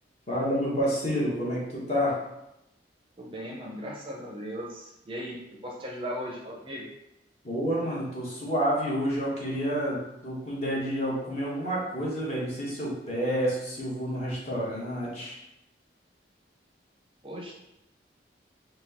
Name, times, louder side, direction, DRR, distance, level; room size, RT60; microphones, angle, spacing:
voice 1, 0.3-2.1 7.4-15.4, equal, 35° left, -6 dB, 1.2 m, -29 dB
voice 2, 3.2-6.9 17.2-17.5, equal, 30° right, -2 dB, 0.5 m, -37 dB
4.2 x 2.2 x 4.1 m, 0.89 s
head